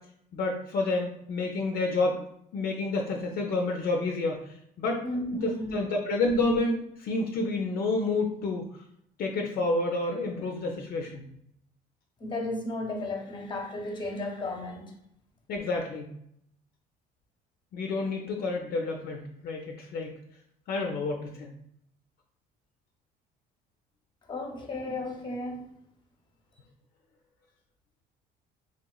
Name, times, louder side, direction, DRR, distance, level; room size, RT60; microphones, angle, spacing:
voice 1, 0.3-2.2 2.5-5.0 5.4-8.6 9.2-11.3 15.5-16.1 17.7-20.2 20.7-21.5, left 2 dB, 65° left, 1 dB, 0.5 m, -29 dB
voice 2, 5.0-5.8 12.2-14.9 24.3-25.6, left 2 dB, 25° left, 1 dB, 0.7 m, -34 dB
3.0 x 2.9 x 2.3 m, 0.74 s
cardioid pair, 110°, 17 cm